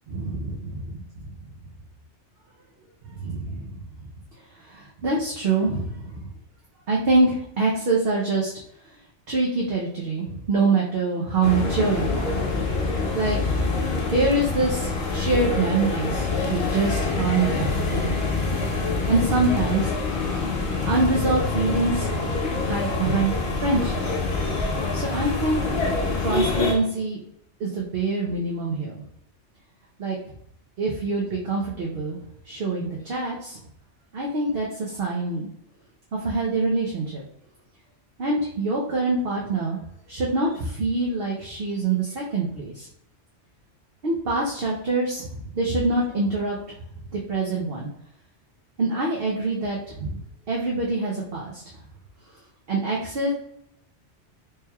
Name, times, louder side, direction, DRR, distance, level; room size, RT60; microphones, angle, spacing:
voice 1, 0.1-0.5 3.2-3.7 4.7-6.2 6.9-8.5 9.3-12.4 13.1-13.5 14.1-18.2 19.1-19.9 20.8-22.3 22.6-24.0 24.9-25.7 26.2-27.2 27.6-28.9 30.0-30.2 30.8-32.2 32.5-33.6 34.1-35.5 36.2-37.2 38.2-39.8 40.1-42.9 44.0-45.3 45.5-46.6 47.3-47.9 48.8-50.2 50.5-51.5 52.7-53.3, right 3 dB, 60° right, -3 dB, 0.9 m, -25 dB
sound 1, 11.4-26.7, left 3 dB, 60° left, 1.0 m, -26 dB
4.3 x 3.3 x 2.2 m, 0.73 s
omnidirectional pair, 1.2 m